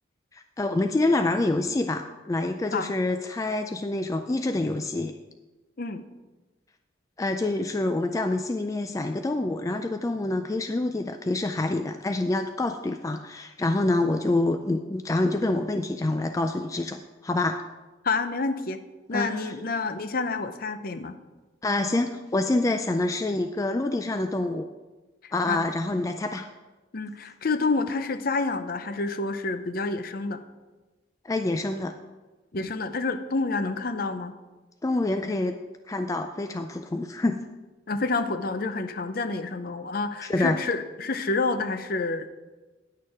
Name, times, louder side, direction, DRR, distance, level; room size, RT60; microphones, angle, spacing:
voice 1, 0.3-5.2 7.2-17.6 19.1-19.5 21.6-24.7 25.3-26.5 31.2-31.9 34.8-35.6 35.9-37.4 40.3-40.6, left 2 dB, 15° left, 6 dB, 0.3 m, -27 dB
voice 2, 18.0-18.8 19.1-21.2 25.5-25.6 26.9-30.4 32.5-34.3 37.9-42.3, left 3 dB, 50° left, 10 dB, 0.6 m, -28 dB
10.5 x 6.6 x 4.8 m, 1.2 s
head